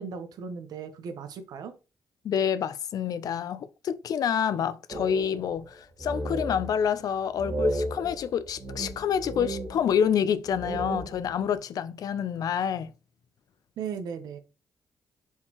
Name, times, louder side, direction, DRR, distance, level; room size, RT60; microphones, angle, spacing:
voice 1, 0.0-1.7 13.8-14.4, right 6 dB, 80° right, 0.7 m, -37 dB
voice 2, 2.2-12.9, left 8 dB, 70° left, 0.4 m, -28 dB
sound 1, 4.9-5.7 6.0-6.9 7.4-10.2 10.5-11.5, equal, 65° right, 1.8 m, -33 dB
4.5 x 3.6 x 2.9 m
cardioid pair, 65°, 7 cm